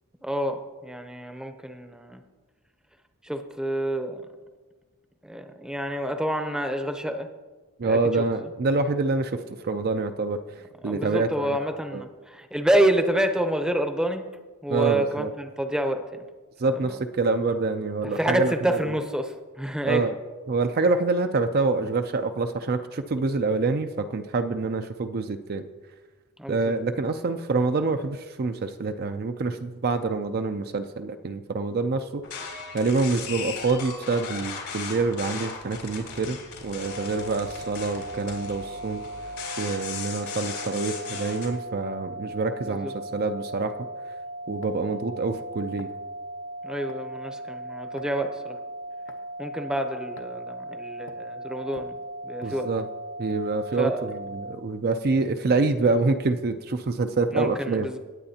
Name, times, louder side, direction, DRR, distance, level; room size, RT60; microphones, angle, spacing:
voice 1, 0.2-2.2 3.2-4.2 5.2-7.3 7.8-8.2 10.8-14.3 14.6-16.2 16.6-16.9 18.1-20.1 26.4-26.7 42.6-42.9 46.6-48.6 49.4-52.0 52.2-52.7 53.8-54.0 57.3-58.0, right 1 dB, 5° right, 6 dB, 0.7 m, -28 dB
voice 2, 7.8-10.4 10.8-11.6 11.9-12.0 14.7-15.3 16.6-18.8 19.8-20.1 20.5-25.7 26.5-32.2 32.7-39.3 39.6-43.7 44.5-45.9 52.4-52.8 53.2-57.9, right 3 dB, 45° right, 7 dB, 0.5 m, -26 dB
sound 1, 32.2-41.5, left 5 dB, 75° left, 3.1 m, -37 dB
sound 2, 36.8-54.5, right 1 dB, 80° right, 0.8 m, -38 dB
sound 3, 44.6-44.9 45.8-46.0 46.9-47.1 48.0-48.3 49.1-49.3 50.2-50.4 51.1-51.3 51.7-53.0 53.3-53.5 54.0-54.2, left 2 dB, 55° left, 0.9 m, -49 dB
19.0 x 8.7 x 2.8 m, 1.3 s
head